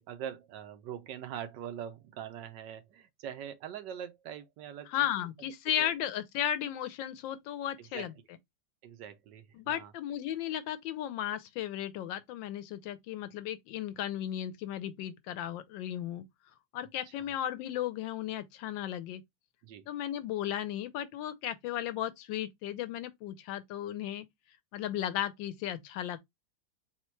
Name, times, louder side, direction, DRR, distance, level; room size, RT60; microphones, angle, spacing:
voice 1, 0.0-4.9 5.8-5.9 7.9-8.1 8.8-9.9 19.6-19.9, right 9 dB, 75° right, 1.2 m, -43 dB
voice 2, 4.9-8.1 9.5-16.3 16.7-19.2 19.9-24.3 24.7-26.2, left 11 dB, 90° left, 1.4 m, -35 dB
4.2 x 2.2 x 4.3 m
omnidirectional pair, 2.0 m